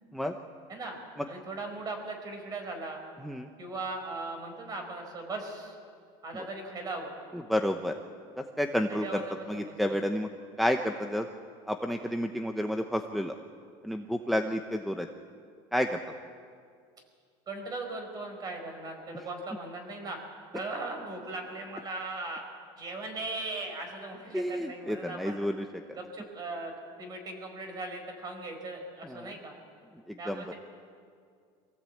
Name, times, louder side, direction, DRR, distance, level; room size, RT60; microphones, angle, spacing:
voice 1, 1.3-3.0 3.6-5.7 6.2-7.1 8.9-10.0 17.5-20.2 20.5-22.4 22.8-25.5 25.9-26.7 27.0-29.5 30.2-30.6, right 2 dB, 30° right, 4 dB, 4.9 m, -38 dB
voice 2, 7.5-7.9 8.6-9.2 9.5-10.3 10.6-11.3 11.7-13.3 13.8-15.1 15.7-16.0 24.3-25.6 29.2-29.3 30.3-30.4, equal, ahead, 3 dB, 0.8 m, -30 dB
24.5 x 16.5 x 8.5 m, 2.2 s
cardioid pair, 140°, 12 cm